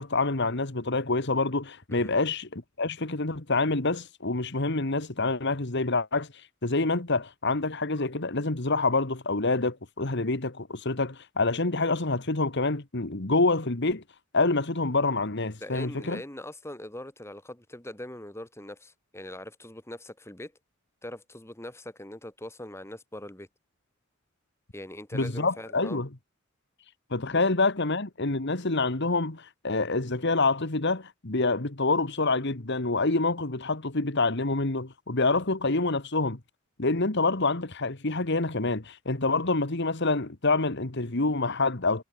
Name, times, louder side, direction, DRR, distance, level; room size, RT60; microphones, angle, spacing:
voice 1, 0.0-6.3 6.6-14.0 14.3-16.2 25.1-26.1 27.1-36.4 36.8-42.0, left 3 dB, 55° left, 1.8 m, -27 dB
voice 2, 15.6-20.5 21.0-23.5 24.7-26.0 27.3-27.4, left 1 dB, 10° left, 2.4 m, -41 dB
head